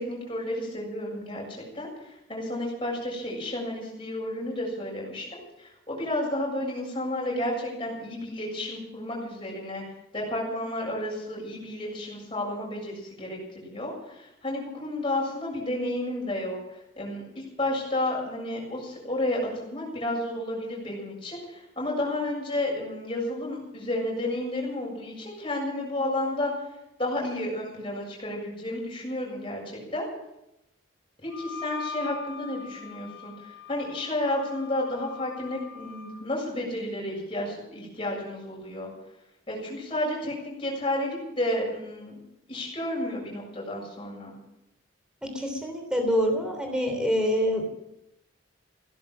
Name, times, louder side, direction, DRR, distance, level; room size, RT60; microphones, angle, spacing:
voice 1, 0.0-1.4 1.7-9.8 10.1-26.5 27.0-30.1 31.2-38.9 39.5-42.2 42.5-44.3, left 1 dB, 25° left, -2 dB, 7.2 m, -31 dB
Wind instrument woodwind instrument, 31.3-36.3, left 5 dB, 55° left, 1.3 m, -41 dB
voice 2, 45.2-47.8, equal, 5° right, 3 dB, 3.3 m, -26 dB
17.0 x 11.5 x 7.4 m, 0.88 s
head